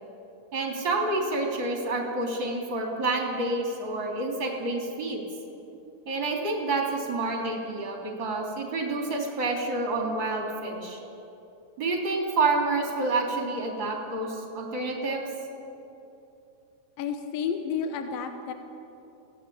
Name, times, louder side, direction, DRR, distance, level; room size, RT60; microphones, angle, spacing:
voice 1, 0.5-5.2 6.1-11.0 11.8-15.3, right 2 dB, 30° right, 0 dB, 3.8 m, -28 dB
voice 2, 17.0-18.5, left 6 dB, 75° left, 6 dB, 2.8 m, -31 dB
24.5 x 17.5 x 8.6 m, 2.9 s
omnidirectional pair, 4.4 m